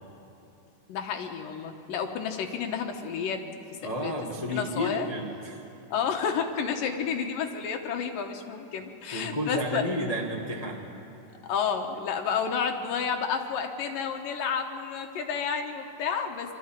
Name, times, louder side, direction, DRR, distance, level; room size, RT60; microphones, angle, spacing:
voice 1, 0.9-3.4 3.7-5.1 5.9-9.8 11.4-16.5, left 6 dB, 75° left, 4 dB, 2.8 m, -31 dB
voice 2, 3.8-5.6 9.1-10.8, equal, 55° left, -2 dB, 0.4 m, -31 dB
23.0 x 13.5 x 9.0 m, 2.9 s
omnidirectional pair, 4.1 m